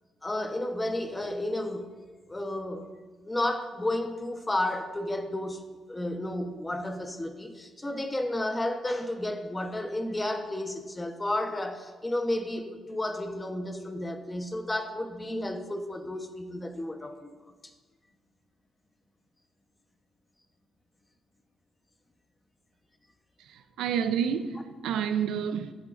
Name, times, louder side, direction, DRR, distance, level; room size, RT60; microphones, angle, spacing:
voice 1, 0.2-1.9 2.3-2.9 3.2-5.6 5.9-17.3 17.6-17.7, left 1 dB, 15° left, 0.9 m, -32 dB
voice 2, 23.4-25.7, right 8 dB, 85° right, 0.5 m, -29 dB
14.5 x 7.8 x 2.5 m
cardioid pair, 90°, 0 cm